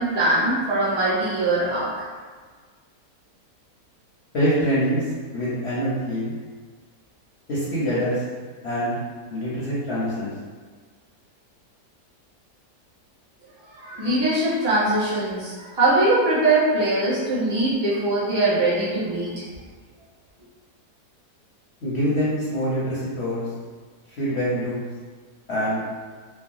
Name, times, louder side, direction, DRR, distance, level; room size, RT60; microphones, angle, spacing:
voice 1, 0.0-2.1 13.8-19.4, right 2 dB, 30° right, -9 dB, 0.5 m, -22 dB
voice 2, 4.3-5.0 5.3-6.3 7.5-8.2 8.6-9.0 9.3-10.3 21.8-23.5 24.2-24.8 25.5-25.8, equal, 55° left, -9 dB, 0.8 m, -24 dB
3.3 x 2.0 x 2.6 m, 1.5 s
omnidirectional pair, 1.7 m